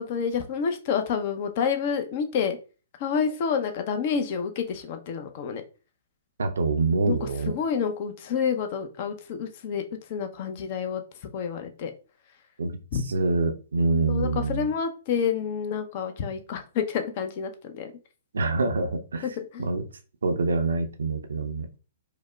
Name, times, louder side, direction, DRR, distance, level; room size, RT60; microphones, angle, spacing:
voice 1, 0.0-2.6 3.0-5.6 7.1-9.8 10.1-11.0 11.3-11.9 12.9-13.0 14.1-17.9 19.2-19.7, left 6 dB, 45° left, 7 dB, 0.5 m, -28 dB
voice 2, 6.4-7.5 12.6-12.8 13.1-14.7 18.3-19.2 19.6-19.8 20.2-21.7, right 3 dB, 70° right, 6 dB, 0.5 m, -25 dB
4.8 x 2.1 x 2.2 m, 0.34 s
figure-of-eight pair, 120°, 0 cm